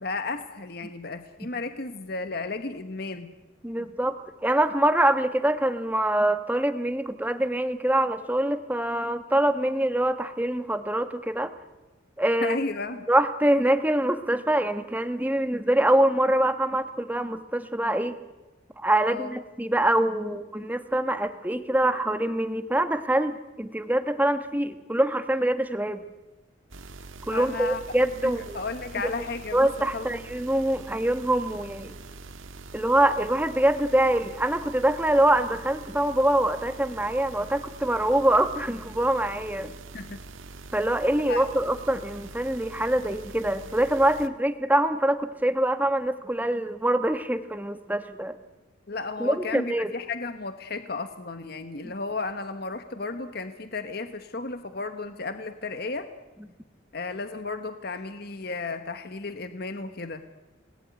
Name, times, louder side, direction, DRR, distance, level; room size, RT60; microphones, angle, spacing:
voice 1, 0.0-3.3 12.4-13.1 19.1-19.3 27.3-27.8 28.2-29.7 29.9-30.2 39.9-40.2 41.3-41.4 48.9-56.1 56.9-60.2, left 3 dB, 50° left, 8 dB, 1.3 m, -33 dB
voice 2, 3.6-11.5 12.2-12.6 13.1-18.2 18.8-26.0 27.3-28.6 29.0-29.1 29.5-31.9 32.7-39.7 40.7-48.4 49.2-49.9, right 1 dB, 10° right, 9 dB, 1.3 m, -24 dB
sound 1, 26.7-44.3, right 3 dB, 90° right, 1.6 m, -44 dB
28.5 x 19.5 x 9.4 m, 1.1 s
head